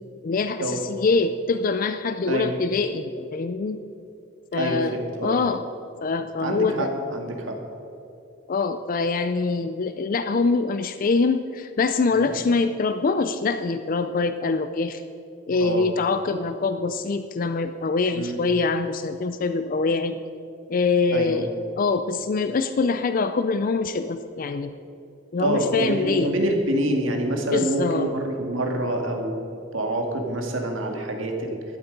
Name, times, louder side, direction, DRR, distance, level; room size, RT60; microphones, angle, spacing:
voice 1, 0.2-3.8 4.5-5.0 5.2-5.6 6.0-6.9 8.5-15.0 15.5-20.2 20.7-21.5 21.8-24.7 25.3-26.3 27.5-28.1, left 4 dB, 45° left, 10 dB, 0.4 m, -24 dB
voice 2, 2.2-2.5 4.5-5.4 6.4-7.6 12.1-12.3 15.6-15.9 18.1-18.4 21.1-21.4 25.4-29.4 29.7-31.6, right 1 dB, 90° right, 2 dB, 1.9 m, -26 dB
12.5 x 11.5 x 5.3 m, 2.7 s
head